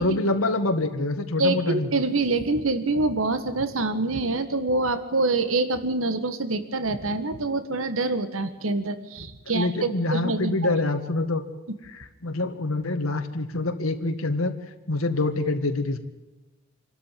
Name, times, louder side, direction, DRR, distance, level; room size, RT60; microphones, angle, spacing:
voice 1, 0.0-1.9 9.5-11.4 11.8-14.6 14.9-16.0, left 2 dB, 85° left, 5 dB, 1.9 m, -26 dB
voice 2, 1.4-10.8, right 3 dB, 75° right, 10 dB, 1.7 m, -26 dB
26.5 x 13.0 x 9.3 m, 1.1 s
head